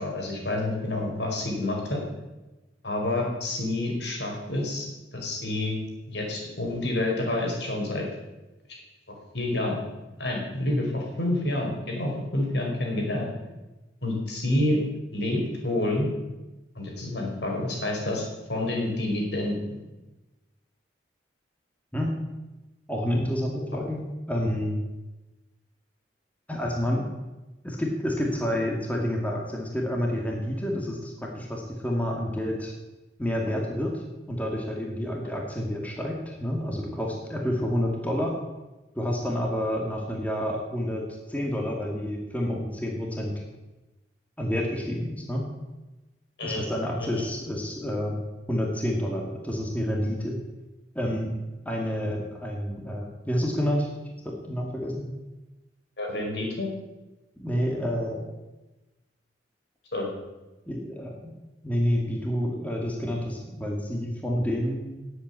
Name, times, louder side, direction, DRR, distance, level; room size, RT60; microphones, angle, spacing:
voice 1, 0.0-2.0 2.8-5.8 6.1-8.1 9.3-9.8 10.2-13.3 14.0-14.8 15.1-16.1 16.7-19.8 46.4-46.6 47.0-47.2 56.0-56.7 59.9-60.1, left 1 dB, 65° left, 0 dB, 5.0 m, -28 dB
voice 2, 22.9-24.8 26.5-27.0 27.6-32.7 33.2-38.4 39.0-43.3 44.4-45.5 46.4-48.2 48.5-50.4 50.9-51.3 51.7-53.9 54.2-55.1 57.4-58.3 60.7-61.3 61.6-64.9, equal, 10° left, 0 dB, 2.0 m, -29 dB
19.0 x 8.2 x 8.2 m, 1.1 s
head